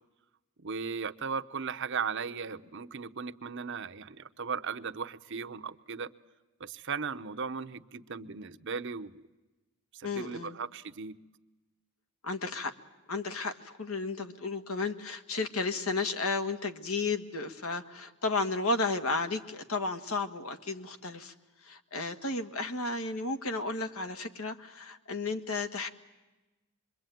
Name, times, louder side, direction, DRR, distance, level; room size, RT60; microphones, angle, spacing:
voice 1, 0.6-6.1 6.6-9.2 9.9-11.2, right 5 dB, 55° right, 9 dB, 0.8 m, -37 dB
voice 2, 10.0-10.6 12.2-12.7 13.1-21.3 21.6-25.9, left 3 dB, 75° left, 8 dB, 1.7 m, -33 dB
26.0 x 22.5 x 9.2 m, 1.1 s
head